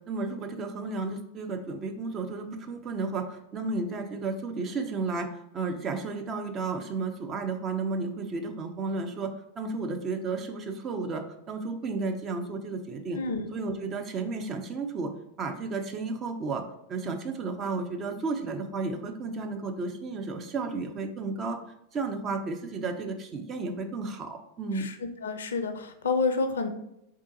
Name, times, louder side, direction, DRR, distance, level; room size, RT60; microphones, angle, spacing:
voice 1, 0.1-5.3 5.5-13.2 13.5-15.1 15.4-16.6 16.9-21.6 21.9-24.9, right 3 dB, 30° right, 4 dB, 0.6 m, -33 dB
voice 2, 13.2-13.5 24.7-24.9 25.2-26.7, left 4 dB, 65° left, 8 dB, 0.5 m, -29 dB
3.8 x 3.6 x 2.7 m, 0.82 s
figure-of-eight pair, 90°, 0 cm